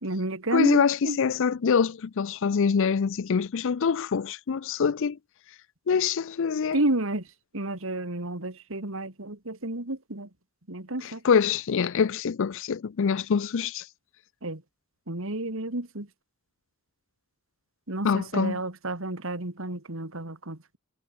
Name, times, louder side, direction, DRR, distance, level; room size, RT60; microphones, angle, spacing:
voice 1, 0.0-1.2 6.7-7.3 7.5-10.3 10.7-11.2 14.4-14.6 15.1-16.1 17.9-20.8, right 2 dB, 65° right, 2.7 m, -31 dB
voice 2, 0.5-5.2 5.9-6.8 11.0-13.8 18.0-18.6, left 6 dB, 60° left, 0.5 m, -25 dB
head